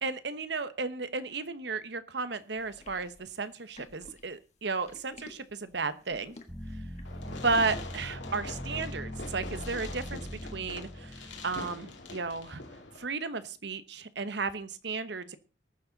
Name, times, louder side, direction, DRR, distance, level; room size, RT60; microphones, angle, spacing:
voice 1, 0.0-6.4 7.3-10.2 10.5-12.6 13.0-15.4, right 4 dB, 65° right, 13 dB, 1.0 m, -34 dB
sound 1, 2.6-7.3, left 2 dB, 35° left, 1.5 m, -53 dB
sound 2, 6.5-12.2, equal, 5° left, 1.3 m, -41 dB
Fireworks, 7.0-13.0, left 2 dB, 70° left, 2.5 m, -43 dB
20.0 x 7.1 x 4.0 m, 0.33 s
head